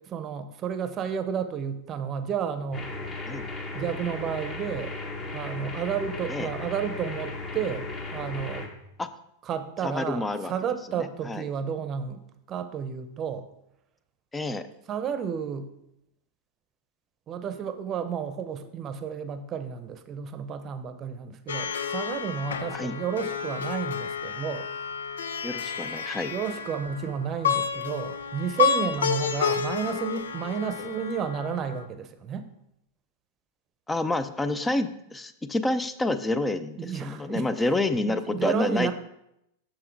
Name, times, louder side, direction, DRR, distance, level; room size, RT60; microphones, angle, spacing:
voice 1, 0.1-2.9 3.7-4.9 5.3-8.7 9.4-13.5 14.9-15.7 17.3-24.7 26.3-32.5 36.8-37.5 38.0-38.9, right 7 dB, 35° right, 10 dB, 0.7 m, -31 dB
sound 1, 2.7-8.7, left 3 dB, 30° left, 1.3 m, -36 dB
voice 2, 9.8-10.5 11.0-11.4 14.3-14.7 22.7-22.9 25.4-26.3 33.9-38.9, left 2 dB, 10° left, 12 dB, 0.5 m, -28 dB
Plucked string instrument, 21.5-31.8, left 7 dB, 90° left, 0.5 m, -30 dB
6.3 x 6.2 x 4.6 m, 0.81 s
hypercardioid pair, 115°, 0 cm